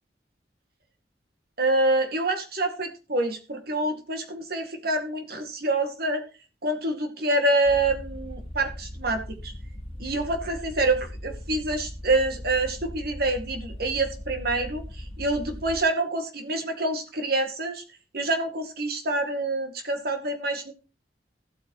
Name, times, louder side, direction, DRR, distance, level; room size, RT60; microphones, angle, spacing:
voice 1, 1.6-6.2 6.6-9.5 10.0-14.8 15.2-17.8 18.1-20.7, right 2 dB, 60° right, 6 dB, 2.2 m, -26 dB
sound 1, 7.6-15.8, left 1 dB, 35° left, 1.7 m, -39 dB
15.0 x 8.6 x 3.1 m, 0.32 s
head